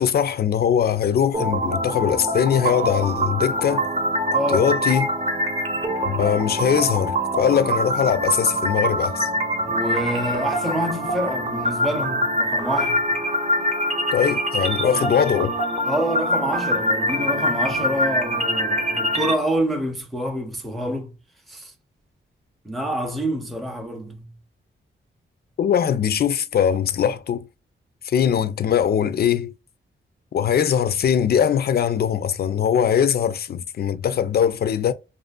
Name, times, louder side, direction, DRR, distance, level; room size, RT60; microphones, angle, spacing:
voice 1, 0.0-3.9 4.5-5.1 6.0-9.3 14.1-15.5 25.6-27.4 28.0-29.5 30.3-34.9, left 8 dB, 50° left, 0.4 m, -21 dB
sound 1, 1.3-19.3, equal, 30° right, 0.7 m, -24 dB
voice 2, 4.3-4.8 9.6-13.1 15.9-21.1 21.5-21.7 22.6-24.3, equal, ahead, 0.5 m, -27 dB
2.5 x 2.3 x 2.3 m
cardioid pair, 90°, 21 cm